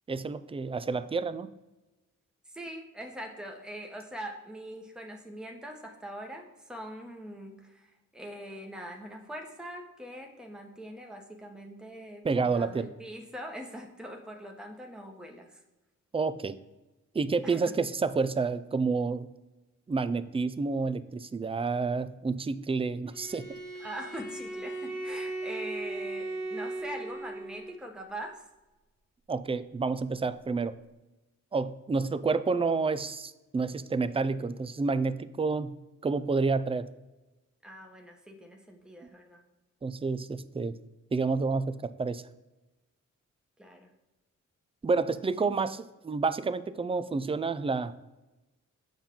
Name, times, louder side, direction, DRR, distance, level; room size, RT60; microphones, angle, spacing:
voice 1, 0.1-1.5 12.2-12.9 16.1-16.6 17.1-19.3 19.9-23.5 29.3-30.8 31.5-35.8 36.0-36.9 39.8-40.8 41.1-42.2 44.8-47.9, right 4 dB, 20° right, 14 dB, 0.4 m, -29 dB
voice 2, 2.5-15.6 17.4-17.7 23.8-28.4 37.6-39.4 43.6-43.9, equal, ahead, 2 dB, 1.1 m, -42 dB
Bowed string instrument, 23.1-27.8, right 2 dB, 80° right, 2.0 m, -37 dB
7.2 x 5.5 x 3.7 m, 1.1 s
cardioid pair, 55°, 32 cm